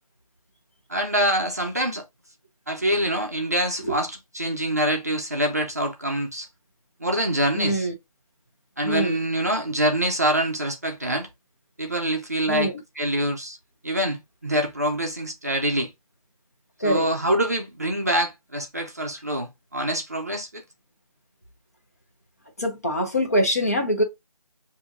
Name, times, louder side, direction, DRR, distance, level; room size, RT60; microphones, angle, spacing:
voice 1, 0.9-2.0 2.7-6.5 7.0-7.9 8.8-11.3 11.8-12.7 13.0-13.6 13.8-15.9 16.8-20.6, right 1 dB, 25° right, 0.6 m, -25 dB
voice 2, 7.5-7.9 8.8-9.2 12.5-12.8 16.8-17.1 22.6-24.0, equal, 25° left, 0.8 m, -24 dB
6.6 x 2.7 x 2.3 m
figure-of-eight pair, 175°, 19 cm